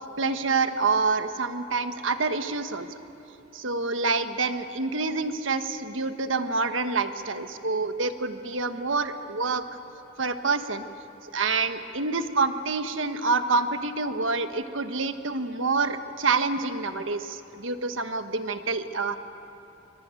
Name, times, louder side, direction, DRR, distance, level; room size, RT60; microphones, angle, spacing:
voice 1, 0.2-3.0 3.5-9.6 10.2-10.9 11.3-19.2, right 4 dB, 80° right, 9 dB, 1.4 m, -27 dB
24.0 x 23.0 x 9.1 m, 2.9 s
head